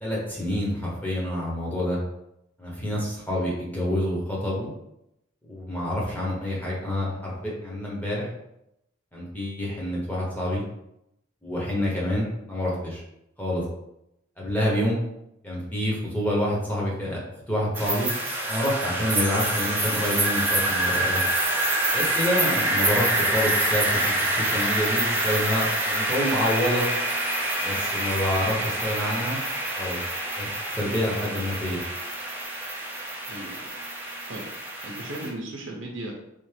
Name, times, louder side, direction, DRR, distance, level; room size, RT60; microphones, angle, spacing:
voice 1, 0.0-2.0 2.6-4.7 5.5-8.3 9.1-10.6 11.4-13.0 13.4-13.6 14.4-15.0 15.4-17.2 17.5-18.1 18.5-21.2 21.9-26.9 27.6-29.4 29.8-30.0 30.4-30.5 30.7-31.8, left 1 dB, 10° left, -5 dB, 0.9 m, -27 dB
sound 1, 17.7-35.3, right 1 dB, 10° right, 0.6 m, -26 dB
voice 2, 34.0-34.4 34.8-36.1, right 1 dB, 70° right, -1 dB, 0.7 m, -37 dB
3.4 x 2.5 x 3.3 m, 0.83 s
head